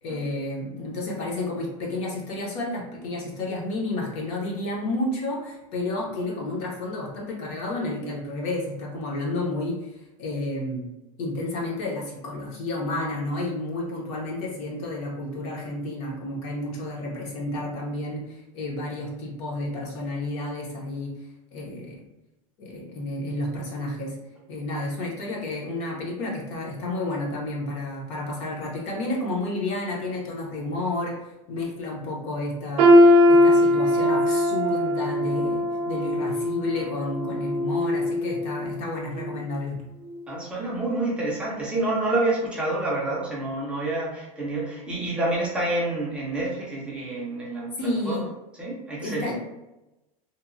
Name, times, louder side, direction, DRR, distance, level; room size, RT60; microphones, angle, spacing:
voice 1, 0.0-9.9 10.2-10.8 11.2-21.1 21.5-21.9 22.6-24.2 24.5-31.2 31.5-33.0 33.3-39.8 47.8-48.3 49.0-49.4, left 2 dB, 35° left, -2 dB, 0.6 m, -31 dB
sound 1, 32.8-38.7 39.1-39.4 40.1-40.2, left 1 dB, 90° right, 0.5 m, -20 dB
voice 2, 40.3-47.7 48.1-48.2 48.6-49.4, right 2 dB, 5° right, -6 dB, 0.4 m, -28 dB
2.8 x 2.0 x 2.5 m, 0.98 s
supercardioid pair, 175°, 19 cm